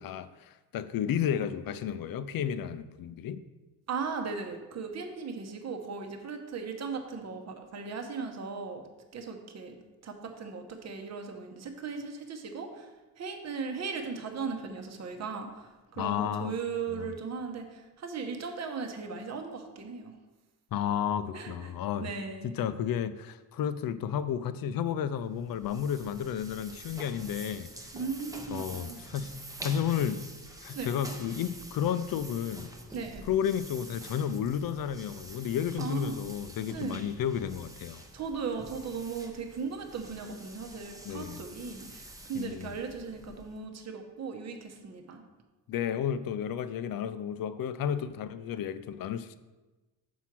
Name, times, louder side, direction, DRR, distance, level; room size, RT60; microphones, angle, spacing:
voice 1, 0.0-3.4 16.0-16.6 16.9-17.1 20.7-22.1 22.4-27.7 28.5-29.3 29.6-30.2 30.6-32.7 33.2-38.0 41.1-41.4 42.3-42.7 45.7-49.4, left 9 dB, 60° left, 13 dB, 0.5 m, -32 dB
voice 2, 3.9-8.8 9.1-9.8 10.0-12.9 13.2-20.1 21.3-21.7 22.0-22.5 27.9-29.0 30.7-30.9 32.9-33.2 35.8-36.2 36.7-37.0 38.1-45.2, right 5 dB, 45° right, 4 dB, 0.9 m, -37 dB
sound 1, 25.2-43.7, right 1 dB, 10° right, 0.7 m, -47 dB
6.1 x 4.7 x 5.9 m, 1.2 s
cardioid pair, 125°, 39 cm